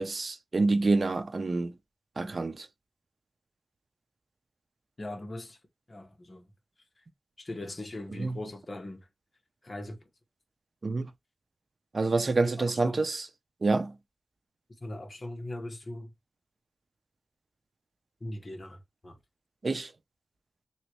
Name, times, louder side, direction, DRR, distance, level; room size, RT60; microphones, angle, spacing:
voice 1, 0.0-1.7 2.2-2.7 8.2-8.4 10.8-11.1 11.9-13.3 13.6-14.0 19.6-19.9, right 3 dB, 60° right, 0.6 m, -27 dB
voice 2, 5.0-5.6 5.9-6.5 7.0-7.1 7.4-9.1 9.6-10.1 12.6-13.0 14.8-16.1 18.2-19.2, left 1 dB, 45° left, 1.3 m, -40 dB
3.1 x 3.0 x 3.0 m
wide cardioid pair, 60°, 0 cm